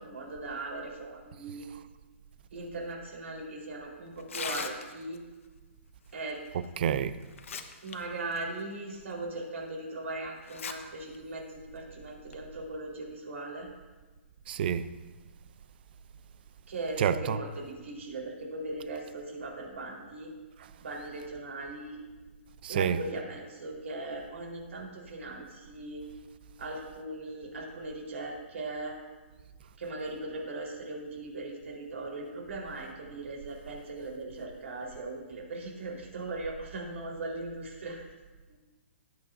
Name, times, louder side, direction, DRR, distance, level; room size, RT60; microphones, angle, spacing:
voice 1, 0.0-1.6 2.5-5.2 6.1-6.4 7.8-13.7 16.7-20.3 20.8-22.0 22.7-26.0 26.6-29.0 29.8-38.0 38.5-38.6, right 2 dB, 75° right, 4.0 m, -39 dB
Tearing, 4.2-5.2 6.6-6.7 7.2-8.0 8.3-8.4 9.1-9.2 10.4-10.7 11.1-11.2 12.1-12.3, left 6 dB, 75° left, 1.0 m, -38 dB
voice 2, 6.8-7.2 14.5-14.9 17.0-17.4 22.6-23.0, right 8 dB, 45° right, 0.5 m, -28 dB
17.0 x 9.4 x 2.7 m
hypercardioid pair, 160°, 7 cm